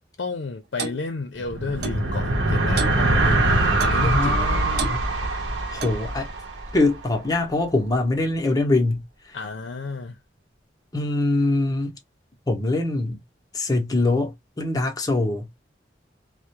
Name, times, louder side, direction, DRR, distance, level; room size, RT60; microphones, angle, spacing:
voice 1, 0.2-4.6 9.3-10.2, left 3 dB, 75° left, 0.5 m, -32 dB
Clock, 0.8-1.0 1.8-2.0 2.8-3.0 3.8-4.0 4.8-5.0 5.8-6.1, right 4 dB, 55° right, 0.4 m, -31 dB
sound 1, 1.4-7.1, right 2 dB, 75° right, 0.8 m, -23 dB
voice 2, 4.0-5.1 5.7-6.3 6.7-9.4 10.9-11.9 12.5-13.2 13.5-15.5, left 2 dB, 20° left, 0.6 m, -23 dB
2.3 x 2.1 x 2.8 m
head